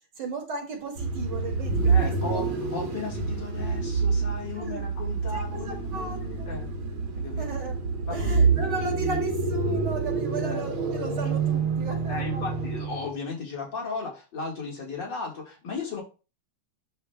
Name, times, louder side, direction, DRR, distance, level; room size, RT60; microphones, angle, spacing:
voice 1, 0.2-2.4 4.5-4.9 5.3-6.2 7.4-7.8 8.1-12.4, right 3 dB, 55° right, -1 dB, 2.8 m, -35 dB
sound 1, 1.0-13.1, right 4 dB, 85° right, 2.1 m, -27 dB
voice 2, 1.9-6.7 7.1-7.6 8.1-8.5 10.4-10.7 12.1-16.0, left 4 dB, 60° left, -1 dB, 2.5 m, -36 dB
11.0 x 4.6 x 2.2 m, 0.32 s
omnidirectional pair, 2.2 m